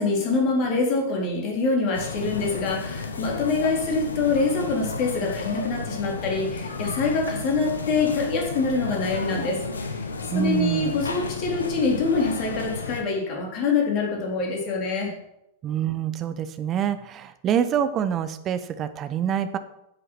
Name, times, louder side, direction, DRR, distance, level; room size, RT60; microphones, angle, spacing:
voice 1, 0.0-9.6 9.9-10.0 10.3-15.1, left 3 dB, 40° left, 0 dB, 3.8 m, -25 dB
sound 1, 1.9-13.0, left 4 dB, 75° left, 1.2 m, -33 dB
voice 2, 10.3-10.9 15.6-19.6, right 8 dB, 30° right, 12 dB, 1.0 m, -26 dB
10.5 x 8.2 x 5.9 m, 0.83 s
figure-of-eight pair, 90°, 0 cm